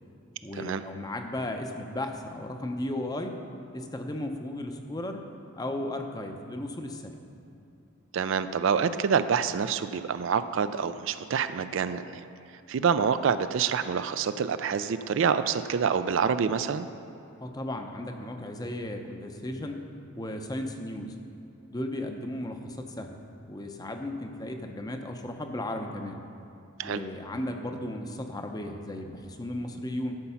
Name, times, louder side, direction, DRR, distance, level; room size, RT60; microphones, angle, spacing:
voice 1, 0.4-3.4 3.7-5.3 5.6-7.2 17.4-19.8 20.2-21.1 21.7-23.2 23.4-26.2 26.8-30.2, left 1 dB, 20° left, 5 dB, 0.6 m, -35 dB
voice 2, 8.1-12.2 12.7-16.9 26.8-27.0, right 6 dB, 65° right, 12 dB, 0.4 m, -27 dB
12.5 x 5.9 x 5.6 m, 2.7 s
head